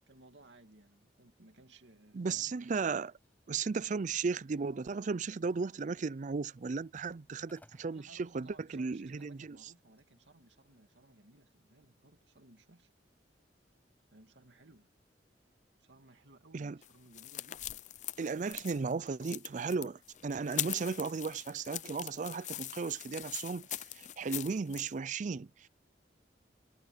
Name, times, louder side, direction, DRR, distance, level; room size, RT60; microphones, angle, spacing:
voice 1, 0.0-2.5 7.9-12.9 14.1-14.9 15.8-17.9 18.7-19.2, right 2 dB, 80° right, 2.4 m, -60 dB
voice 2, 2.1-3.1 3.5-9.6 16.5-16.8 18.2-25.7, right 4 dB, 45° right, 0.4 m, -35 dB
sound 1, 2.7-11.0, left 1 dB, 10° left, 5.5 m, -70 dB
sound 2, 16.8-24.9, left 13 dB, 40° left, 0.5 m, -42 dB
head